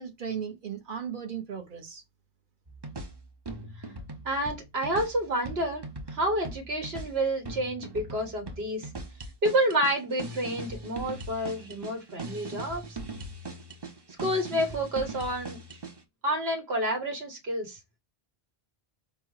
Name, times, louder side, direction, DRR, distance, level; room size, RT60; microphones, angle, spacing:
voice 1, 0.0-2.0, right 7 dB, 55° right, 1.1 m, -36 dB
sound 1, 2.7-16.0, right 2 dB, 30° right, 0.6 m, -40 dB
voice 2, 4.2-8.9 9.4-13.0 14.2-15.6 16.2-17.8, right 1 dB, 80° right, 1.5 m, -29 dB
5.1 x 2.2 x 4.7 m
omnidirectional pair, 1.0 m